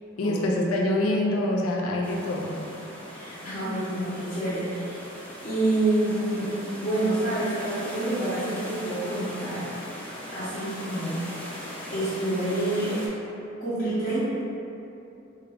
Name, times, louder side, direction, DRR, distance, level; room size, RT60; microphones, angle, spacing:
voice 1, 0.2-2.6, left 1 dB, 90° left, -1 dB, 0.4 m, -25 dB
sound 1, 2.0-13.1, equal, 5° left, 0.5 m, -40 dB
voice 2, 3.1-5.0 5.4-6.5 6.8-11.3 11.9-13.0 13.6-14.3, right 1 dB, 35° left, -15 dB, 0.8 m, -28 dB
3.5 x 2.3 x 3.3 m, 2.8 s
head